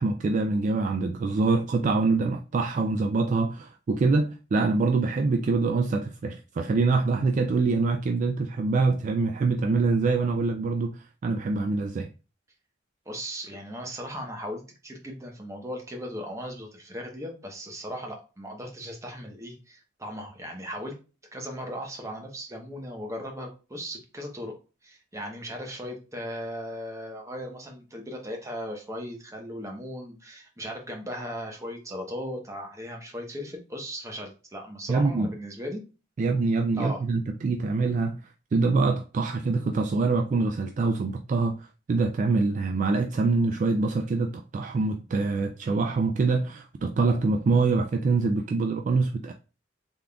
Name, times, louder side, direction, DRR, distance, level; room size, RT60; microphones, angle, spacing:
voice 1, 0.0-10.9 11.2-12.1 34.9-35.3 36.2-38.2 38.5-41.6 41.9-49.3, right 3 dB, 40° right, 0.3 m, -25 dB
voice 2, 13.1-21.0 21.3-24.5 24.8-35.8 36.8-37.0, equal, 15° right, 0.8 m, -37 dB
3.6 x 3.6 x 2.2 m
head